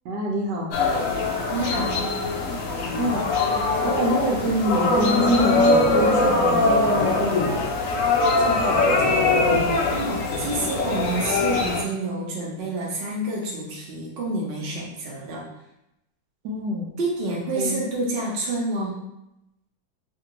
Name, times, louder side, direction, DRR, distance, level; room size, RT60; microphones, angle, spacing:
voice 1, 0.0-0.8 3.0-3.3 3.8-7.6 8.4-9.4 16.4-16.9 17.5-17.8, equal, 75° right, -1 dB, 1.2 m, -26 dB
sound 1, 0.7-11.8, left 3 dB, 85° left, 0.7 m, -22 dB
voice 2, 1.5-2.0 9.9-15.4 17.0-19.0, right 2 dB, 60° right, -4 dB, 0.6 m, -28 dB
2.8 x 2.6 x 2.8 m, 0.85 s
omnidirectional pair, 2.0 m